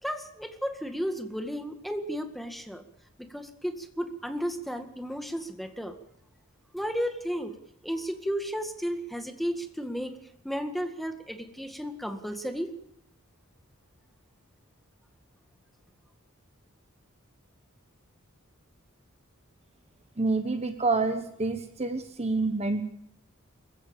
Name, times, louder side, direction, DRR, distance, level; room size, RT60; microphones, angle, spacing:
voice 1, 0.0-2.8 3.2-6.0 6.7-7.6 7.8-10.2 10.4-12.7, equal, ahead, 6 dB, 1.9 m, -33 dB
voice 2, 20.2-22.8, right 3 dB, 30° right, 8 dB, 1.2 m, -28 dB
24.5 x 15.0 x 7.2 m, 0.78 s
head